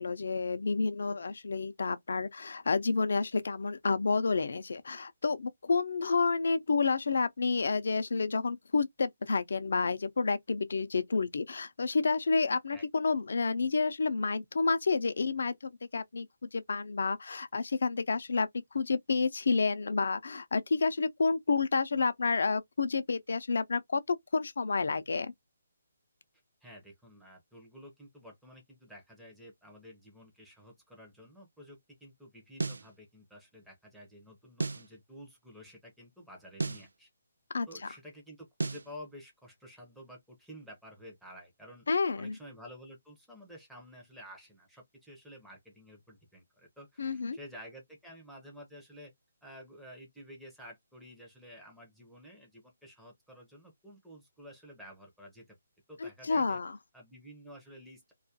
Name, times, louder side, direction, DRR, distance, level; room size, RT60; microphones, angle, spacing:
voice 1, 0.0-25.3 37.5-37.7 41.9-42.4 47.0-47.4 56.0-56.8, left 4 dB, 70° left, 0.4 m, -30 dB
voice 2, 26.6-37.1 37.7-41.9 42.2-49.1 49.4-55.6 55.9-56.6 56.9-58.1, equal, ahead, 0.6 m, -51 dB
sound 1, 32.6-32.9 34.6-34.9 36.6-36.9 38.6-38.9, right 3 dB, 90° right, 0.3 m, -33 dB
2.3 x 2.1 x 2.7 m
hypercardioid pair, 160°, 0 cm